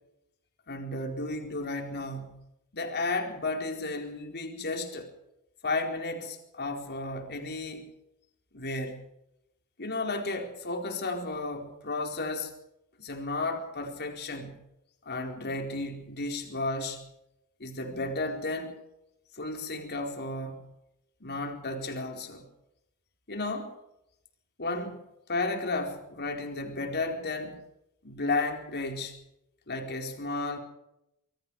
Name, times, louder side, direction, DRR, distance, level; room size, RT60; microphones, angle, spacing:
voice 1, 0.7-2.5 2.7-5.1 5.6-7.9 8.5-9.0 9.8-12.5 13.0-14.6 15.0-17.1 17.6-18.7 19.3-20.7 21.2-22.4 23.3-23.8 24.6-27.6 28.0-29.2 29.7-30.6, left 2 dB, 50° left, 4 dB, 4.4 m, -33 dB
26.0 x 22.5 x 4.9 m, 0.85 s
head